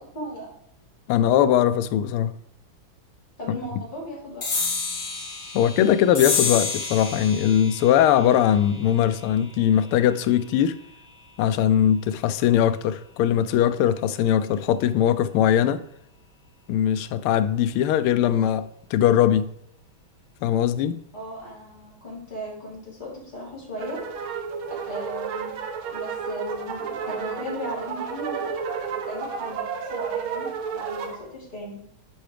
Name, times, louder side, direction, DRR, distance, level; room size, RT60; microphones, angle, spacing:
voice 1, 0.1-0.5 3.4-4.5 21.1-24.0 24.7-25.5 25.9-31.8, equal, 20° left, 3.2 m, -37 dB
voice 2, 1.1-2.3 5.5-10.7 11.4-15.8 16.7-19.5 20.4-21.0, left 10 dB, 85° left, 1.4 m, -20 dB
sound 1, 4.4-11.3, left 5 dB, 40° left, 1.5 m, -31 dB
sound 2, 23.8-31.2, right 6 dB, 75° right, 1.7 m, -31 dB
9.0 x 5.7 x 3.3 m
omnidirectional pair, 2.4 m